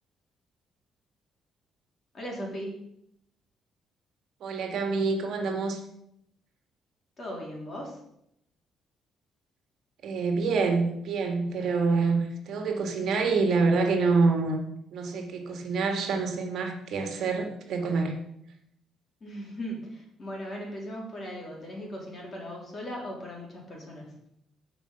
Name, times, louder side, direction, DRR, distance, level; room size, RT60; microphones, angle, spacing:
voice 1, 2.1-2.8 7.2-8.0 19.2-24.1, equal, 30° left, -1 dB, 3.5 m, -38 dB
voice 2, 4.4-5.8 10.0-14.6 14.9-18.2, right 4 dB, 55° right, 4 dB, 1.8 m, -26 dB
15.5 x 5.3 x 5.7 m, 0.77 s
cardioid pair, 165°, 0 cm